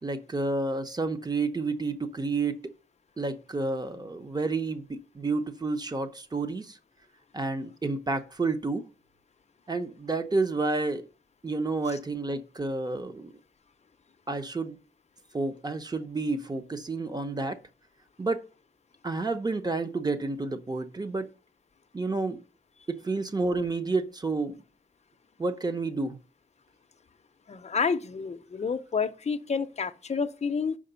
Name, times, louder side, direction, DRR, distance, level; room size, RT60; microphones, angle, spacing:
voice 1, 0.0-2.7 3.2-6.8 7.3-8.9 9.7-11.1 11.4-13.3 14.3-14.8 15.3-17.6 18.2-18.4 19.0-21.3 21.9-22.4 22.9-24.6 25.4-26.2, right 3 dB, 20° right, 0.7 m, -30 dB
voice 2, 27.5-30.8, left 5 dB, 35° left, 0.5 m, -29 dB
5.8 x 5.0 x 6.7 m
wide cardioid pair, 165°, 18 cm